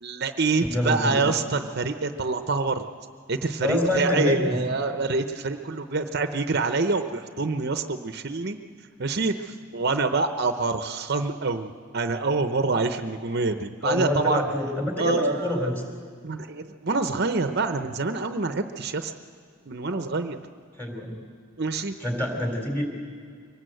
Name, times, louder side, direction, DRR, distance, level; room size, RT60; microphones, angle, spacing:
voice 1, 0.0-2.9 3.3-8.6 9.0-14.4 15.0-15.7 16.2-19.1 19.7-20.4 21.6-22.0, right 3 dB, 55° right, 7 dB, 0.8 m, -26 dB
voice 2, 0.7-1.2 3.6-4.6 13.8-15.8 20.8-21.2 22.0-23.0, left 1 dB, 10° left, 2 dB, 3.8 m, -26 dB
24.0 x 19.0 x 7.9 m, 2.2 s
head